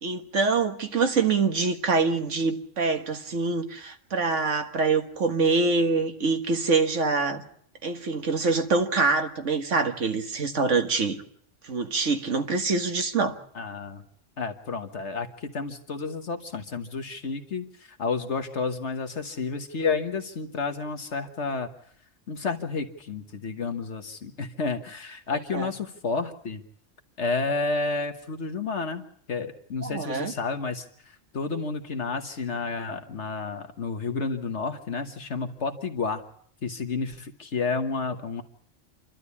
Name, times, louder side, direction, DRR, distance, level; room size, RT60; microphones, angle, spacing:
voice 1, 0.0-7.4 7.8-11.2 11.6-13.4 25.5-25.7 29.8-30.3, right 4 dB, 75° right, 5 dB, 1.9 m, -25 dB
voice 2, 13.5-14.0 14.4-21.7 22.3-26.6 27.2-29.0 29.3-36.2 36.6-38.4, left 4 dB, 65° left, 7 dB, 1.5 m, -31 dB
28.5 x 12.0 x 8.3 m, 0.66 s
omnidirectional pair, 1.3 m